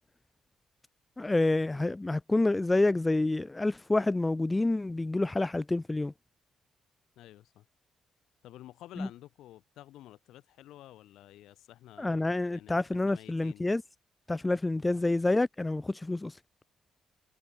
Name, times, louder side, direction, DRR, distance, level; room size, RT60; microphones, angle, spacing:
voice 1, 1.2-6.1 9.0-9.1 12.0-13.8 14.3-16.4, left 2 dB, 15° left, 0.6 m, -28 dB
voice 2, 7.2-7.7 8.4-12.2 12.5-13.7 14.8-15.0, left 14 dB, 85° left, 7.2 m, -51 dB
cardioid pair, 90°, 0 cm